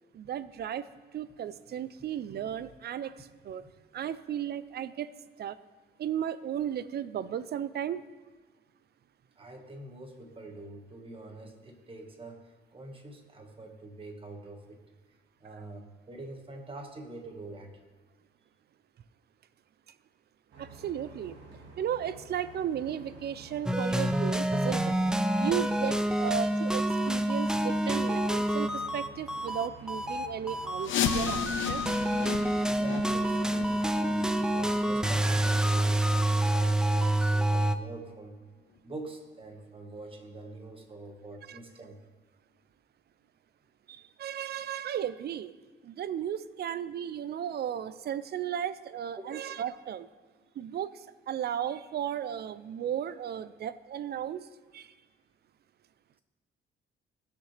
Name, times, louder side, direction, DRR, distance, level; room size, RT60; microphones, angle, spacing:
voice 1, 0.1-0.8 1.1-3.6 3.9-5.1 5.4-5.6 6.0-8.0 20.6-21.4 21.8-25.0 25.4-31.8 41.5-41.6 43.9-45.5 45.8-50.1 50.6-54.5 54.7-54.9, right 9 dB, 55° right, 16 dB, 0.5 m, -35 dB
voice 2, 9.4-14.8 15.4-17.8 27.9-28.0 32.6-38.3 38.8-42.0 49.2-49.4, right 2 dB, 25° right, 3 dB, 1.6 m, -45 dB
sound 1, 20.5-35.5, right 2 dB, 75° right, 2.0 m, -50 dB
sound 2, 23.7-37.8, right 1 dB, 5° right, 0.5 m, -27 dB
sound 3, 30.8-36.4 36.7-36.9 37.4-37.5 38.1-38.2 38.8-38.9, left 7 dB, 75° left, 1.0 m, -35 dB
19.0 x 6.7 x 3.3 m, 1.4 s
cardioid pair, 90°, 20 cm